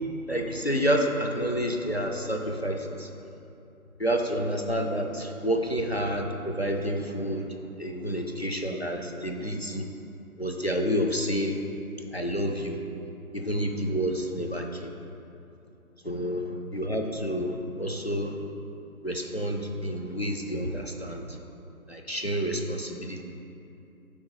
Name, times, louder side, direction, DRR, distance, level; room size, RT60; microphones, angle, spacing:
voice 1, 0.3-3.1 4.0-9.9 10.4-11.6 12.1-12.8 13.3-14.9 16.0-18.5 19.0-21.4 21.9-23.2, equal, 50° left, 2 dB, 0.5 m, -29 dB
12.0 x 4.7 x 2.3 m, 2.7 s
figure-of-eight pair, 175°, 44 cm